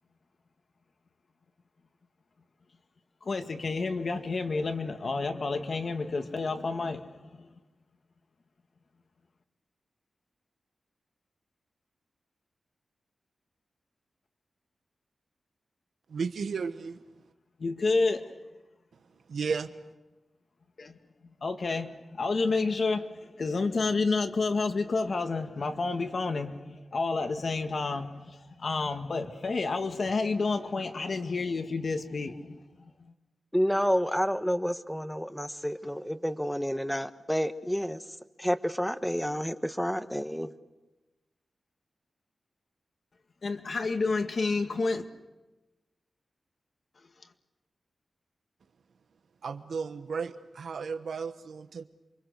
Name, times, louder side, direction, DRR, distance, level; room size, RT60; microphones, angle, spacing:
voice 1, 3.2-7.5 17.6-18.3 20.8-21.0 21.4-32.9 43.4-45.1, left 3 dB, 55° left, 6 dB, 1.9 m, -30 dB
voice 2, 16.1-17.0 19.3-19.7 49.4-51.8, right 5 dB, 80° right, 10 dB, 1.2 m, -34 dB
voice 3, 33.5-38.0 38.4-40.5, equal, 5° left, 10 dB, 1.2 m, -29 dB
28.0 x 24.5 x 6.6 m, 1.1 s
wide cardioid pair, 105°, 0 cm